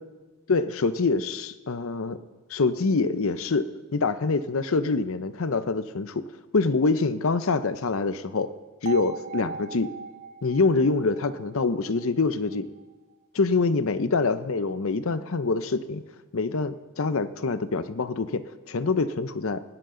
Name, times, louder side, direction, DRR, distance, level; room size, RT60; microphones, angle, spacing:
voice 1, 0.5-2.2 2.5-6.3 6.5-8.5 8.8-9.9 10.4-12.7 13.3-16.0 16.3-19.6, left 3 dB, 65° left, 13 dB, 0.7 m, -25 dB
sound 1, 8.9-12.8, right 4 dB, 35° right, 0.4 m, -40 dB
19.5 x 13.5 x 3.8 m, 1.3 s
head